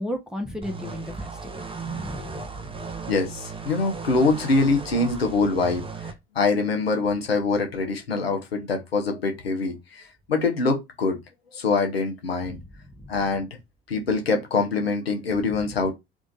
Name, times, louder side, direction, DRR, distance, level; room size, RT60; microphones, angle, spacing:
voice 1, 0.0-2.9 12.4-12.6 12.9-13.1, left 1 dB, ahead, 1.4 m, -35 dB
sound 1, 0.6-6.1, right 5 dB, 20° right, 1.0 m, -36 dB
voice 2, 3.1-11.2 11.5-12.6 13.1-13.5 13.9-15.9, left 3 dB, 85° left, 1.2 m, -24 dB
3.6 x 3.5 x 4.1 m
figure-of-eight pair, 65°, 30 cm